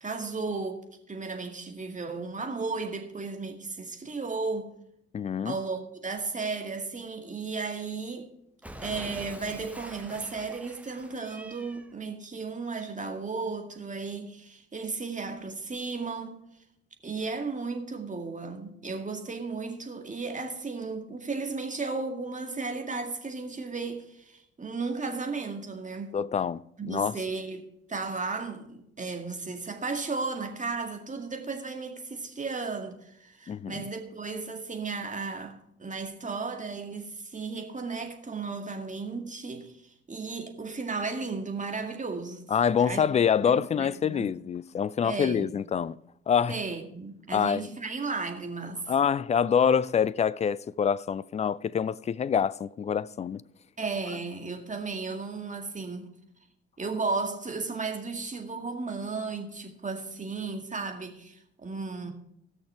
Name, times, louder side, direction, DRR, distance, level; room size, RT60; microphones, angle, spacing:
voice 1, 0.0-4.7 5.4-8.3 8.8-16.4 17.0-26.2 26.8-42.4 42.8-43.0 43.4-44.3 45.0-45.5 46.5-48.9 53.8-56.1 56.8-62.1, right 4 dB, 25° right, 2.1 m, -34 dB
voice 2, 5.1-5.6 26.1-27.2 33.5-33.7 42.5-46.0 46.3-46.6 47.3-47.7 48.9-53.4, left 7 dB, 20° left, 0.4 m, -26 dB
Cat, 8.6-11.9, right 1 dB, 5° right, 1.1 m, -45 dB
17.5 x 6.4 x 4.7 m
figure-of-eight pair, 45°, 32 cm